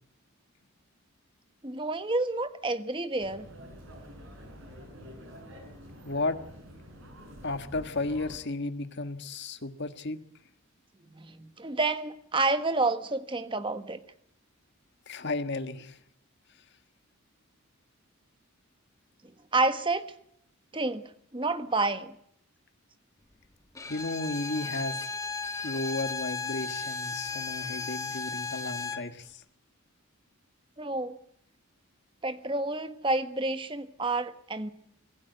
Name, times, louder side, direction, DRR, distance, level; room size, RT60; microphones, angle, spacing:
voice 1, 1.6-3.5 11.1-14.0 19.5-20.1 20.7-21.0 21.3-22.1 30.8-31.2 32.2-34.7, right 2 dB, 25° right, 10 dB, 1.4 m, -29 dB
sound 1, 3.2-8.4, equal, 65° right, 6.9 m, -47 dB
voice 2, 6.0-6.4 7.4-10.2 15.1-16.0 23.9-25.1 25.6-29.4, left 2 dB, 50° left, 9 dB, 1.6 m, -33 dB
Bowed string instrument, 23.7-29.1, left 4 dB, 15° left, 1.5 m, -35 dB
25.5 x 15.0 x 8.0 m, 0.72 s
head